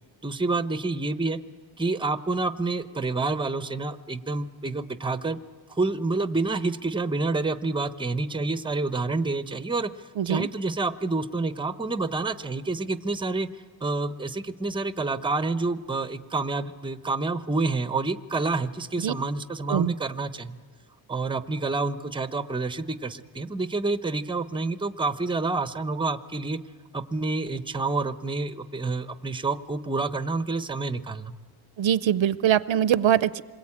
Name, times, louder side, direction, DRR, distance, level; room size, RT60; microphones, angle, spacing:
voice 1, 0.2-1.4 1.8-5.4 5.7-20.6 21.1-26.6 26.9-31.3, right 3 dB, 10° right, 11 dB, 0.7 m, -28 dB
voice 2, 10.2-10.5 19.0-19.1 19.7-19.9 31.8-33.4, right 10 dB, 70° right, 17 dB, 0.6 m, -22 dB
27.0 x 21.5 x 8.6 m, 1.6 s
wide cardioid pair, 170°, 49 cm